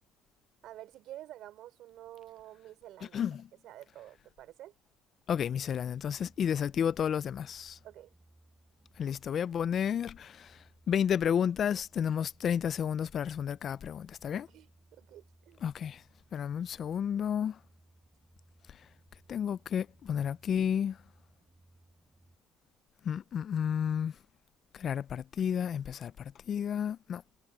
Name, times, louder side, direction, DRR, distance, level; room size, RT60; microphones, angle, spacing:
voice 1, 0.6-3.2 3.6-4.7 7.8-8.1 14.3-15.6, right 13 dB, 65° right, 3.3 m, -49 dB
voice 2, 3.1-3.5 5.3-7.8 9.0-14.5 15.6-16.0 16.3-17.6 18.7-18.8 19.3-21.0 23.0-24.2 24.7-27.2, left 8 dB, 45° left, 0.4 m, -31 dB
sound 1, 5.5-22.4, right 1 dB, 10° right, 7.5 m, -64 dB
cardioid pair, 105°, 0 cm